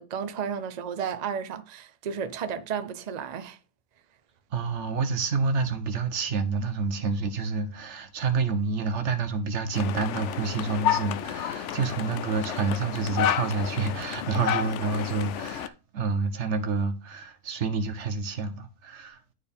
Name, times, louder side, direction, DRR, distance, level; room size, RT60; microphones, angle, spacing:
voice 1, 0.0-3.6, right 7 dB, 70° right, 0.4 m, -33 dB
voice 2, 4.5-19.2, right 4 dB, 55° right, 1.1 m, -28 dB
sound 1, 9.7-15.7, left 10 dB, 65° left, 0.7 m, -30 dB
11.0 x 4.4 x 3.5 m
omnidirectional pair, 1.6 m